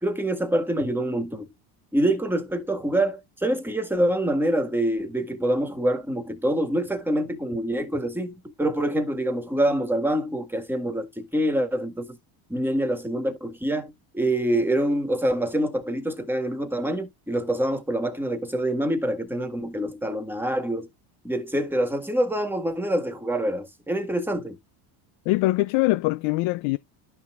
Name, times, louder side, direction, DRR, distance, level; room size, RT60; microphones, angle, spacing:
voice 1, 0.0-1.5 1.9-12.2 12.5-20.9 21.2-24.6, right 1 dB, 5° right, 1.7 m, -26 dB
voice 2, 25.3-26.8, left 20 dB, 70° left, 0.6 m, -22 dB
12.0 x 5.9 x 2.5 m
cardioid pair, 120°, 50 cm